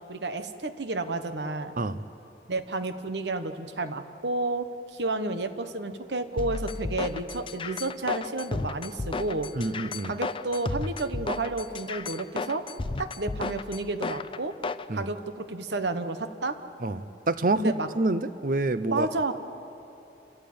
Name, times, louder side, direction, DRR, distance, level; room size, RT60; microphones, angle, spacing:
voice 1, 0.1-1.8 2.5-9.5 10.0-12.6 13.0-14.5 14.9-16.6 17.5-17.9 18.9-19.3, right 2 dB, 75° right, 9 dB, 1.2 m, -31 dB
sound 1, 6.4-14.9, left 3 dB, 30° left, 0.5 m, -33 dB
voice 2, 9.5-10.1 14.9-15.1 16.8-19.1, right 2 dB, 50° right, 13 dB, 0.7 m, -27 dB
28.5 x 14.5 x 8.8 m, 2.9 s
head